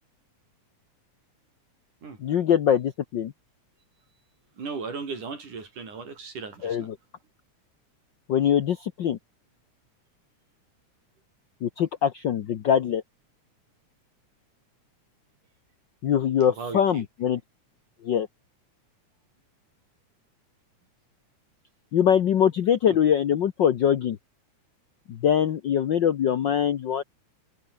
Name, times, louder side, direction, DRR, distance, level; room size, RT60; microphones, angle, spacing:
voice 1, 2.2-3.3 6.6-6.9 8.3-9.2 11.6-13.0 16.0-17.4 18.0-18.3 21.9-24.2 25.1-27.0, left 9 dB, 80° left, 1.0 m, -23 dB
voice 2, 4.6-6.9 16.6-17.0 22.9-23.0, right 4 dB, 85° right, 6.9 m, -36 dB
omnidirectional pair, 3.5 m